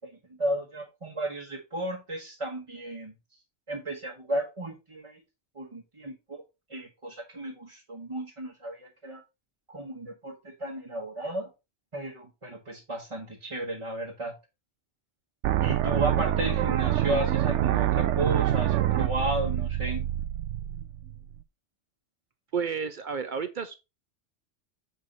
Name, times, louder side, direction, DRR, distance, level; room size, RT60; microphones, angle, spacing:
voice 1, 0.4-3.1 3.7-5.2 5.5-6.4 6.7-9.2 9.7-11.5 11.9-14.3 15.6-20.1, right 1 dB, 30° right, 1.4 m, -34 dB
sound 1, 15.4-21.4, right 12 dB, 90° right, 0.9 m, -26 dB
voice 2, 22.5-23.8, right 6 dB, 50° right, 0.7 m, -31 dB
7.6 x 4.7 x 4.1 m
omnidirectional pair, 1.2 m